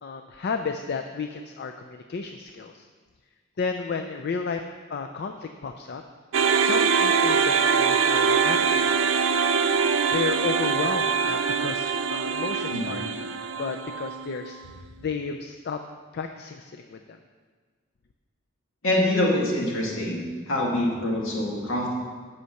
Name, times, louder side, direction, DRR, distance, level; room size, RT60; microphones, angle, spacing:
voice 1, 0.0-2.9 3.6-4.6 4.9-6.0 6.6-9.3 9.9-13.2 13.6-14.6 15.0-15.8 16.1-17.2, left 5 dB, 50° left, 6 dB, 0.4 m, -32 dB
sound 1, 6.3-14.6, right 6 dB, 65° right, 0.5 m, -23 dB
voice 2, 18.8-21.9, left 1 dB, 70° left, -3 dB, 2.0 m, -25 dB
8.1 x 5.7 x 6.4 m, 1.5 s
head